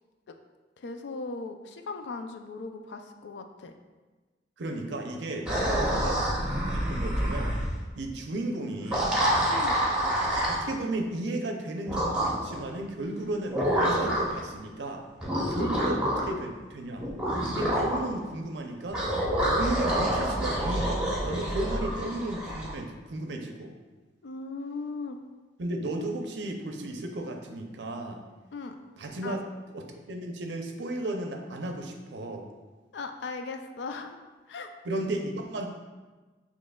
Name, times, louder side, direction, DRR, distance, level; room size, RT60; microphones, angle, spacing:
voice 1, 0.8-3.7 5.9-6.1 9.5-9.8 15.3-15.7 16.1-16.3 24.2-25.2 28.5-28.7 29.2-29.4 32.9-34.2 34.5-34.7, left 3 dB, 80° left, 6 dB, 0.4 m, -38 dB
voice 2, 4.6-7.6 8.0-9.2 10.5-15.0 15.5-17.1 17.4-19.0 19.5-23.7 25.6-28.2 29.0-29.4 29.7-32.5 34.8-35.7, right 1 dB, 85° right, 3 dB, 0.5 m, -34 dB
sound 1, 5.5-7.7 8.8-10.6 11.9-12.6 13.5-14.4 15.2-16.3 17.0-18.0 18.9-22.7, right 1 dB, 5° right, 0.9 m, -27 dB
6.3 x 3.0 x 2.2 m, 1.3 s
head